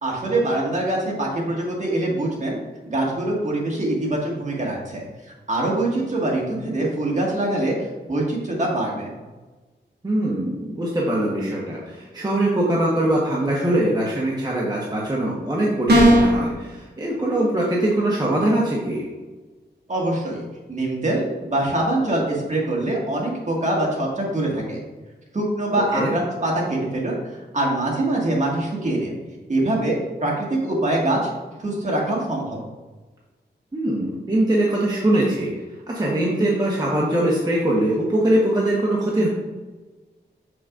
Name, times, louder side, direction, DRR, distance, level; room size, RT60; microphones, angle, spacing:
voice 1, 0.0-2.6 2.9-5.0 5.5-9.1 19.9-24.8 25.3-27.2 27.5-29.2 29.5-31.2 31.6-32.6, right 1 dB, 40° right, -3 dB, 1.7 m, -24 dB
voice 2, 10.0-19.0 25.9-26.1 33.7-35.5 35.9-39.3, right 1 dB, 20° right, -4 dB, 1.1 m, -22 dB
sound 1, 15.9-16.4, equal, 60° right, 2.0 m, -14 dB
6.6 x 6.1 x 2.5 m, 1.2 s
wide cardioid pair, 105°, 19 cm